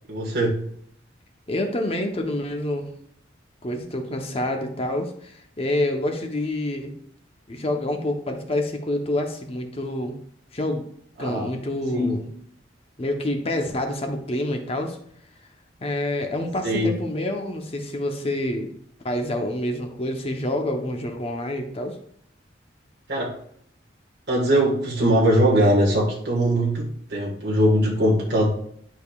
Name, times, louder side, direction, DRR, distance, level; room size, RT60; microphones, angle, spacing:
voice 1, 0.1-0.6 11.2-11.5 11.9-12.1 16.6-16.9 23.1-23.4 24.3-28.5, right 1 dB, 55° right, -3 dB, 1.5 m, -21 dB
voice 2, 1.5-2.9 3.6-6.9 7.5-10.2 10.5-10.8 11.2-12.3 13.0-15.0 15.8-18.7 19.0-22.0, left 1 dB, 30° left, 4 dB, 0.8 m, -27 dB
11.0 x 5.1 x 2.4 m, 0.66 s
head